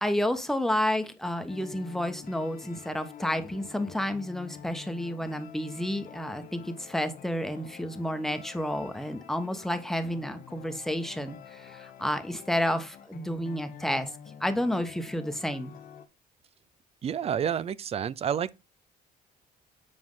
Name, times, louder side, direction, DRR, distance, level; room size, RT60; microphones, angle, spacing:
voice 1, 0.0-14.1 14.4-15.7, left 1 dB, ahead, 1.0 m, -30 dB
sound 1, 1.5-16.1, left 8 dB, 55° left, 1.0 m, -48 dB
voice 2, 17.0-18.5, right 8 dB, 35° right, 0.5 m, -29 dB
7.5 x 4.7 x 3.8 m
cardioid pair, 110°, 17 cm